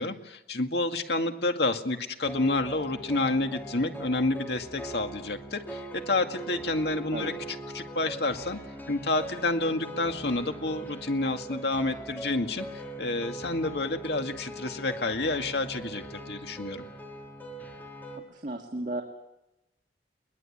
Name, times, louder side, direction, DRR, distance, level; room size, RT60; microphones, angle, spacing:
voice 1, 0.0-7.3 7.7-8.6 8.9-16.9, left 2 dB, 75° left, 5 dB, 2.1 m, -29 dB
sound 1, 2.2-18.2, right 1 dB, 10° left, 4.4 m, -41 dB
voice 2, 18.1-19.0, right 1 dB, 45° right, 2 dB, 2.3 m, -35 dB
22.5 x 21.5 x 8.8 m, 0.91 s
head